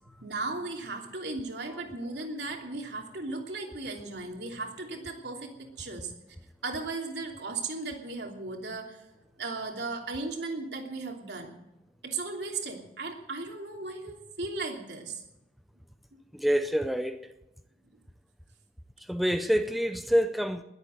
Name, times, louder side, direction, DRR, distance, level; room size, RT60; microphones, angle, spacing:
voice 1, 0.2-6.1 6.6-9.0 9.4-11.6 12.0-15.2, right 3 dB, 70° right, 3.0 m, -36 dB
voice 2, 16.3-17.3 19.0-20.6, equal, ahead, 0.6 m, -27 dB
21.0 x 8.4 x 7.8 m
head